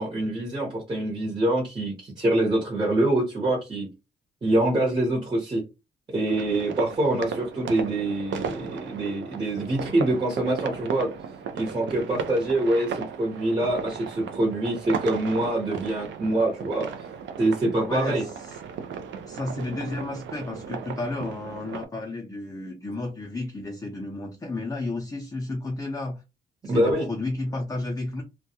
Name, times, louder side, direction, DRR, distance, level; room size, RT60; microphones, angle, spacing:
voice 1, 0.0-3.9 4.4-5.6 6.1-11.1 11.5-16.9 17.4-18.2 26.7-27.1, right 1 dB, 25° right, 0.9 m, -25 dB
sound 1, 6.3-21.9, right 7 dB, 70° right, 0.5 m, -36 dB
voice 2, 17.9-18.6 19.3-26.2 26.6-28.2, left 2 dB, 15° left, 0.5 m, -32 dB
2.2 x 2.2 x 2.8 m
cardioid pair, 90°, 20 cm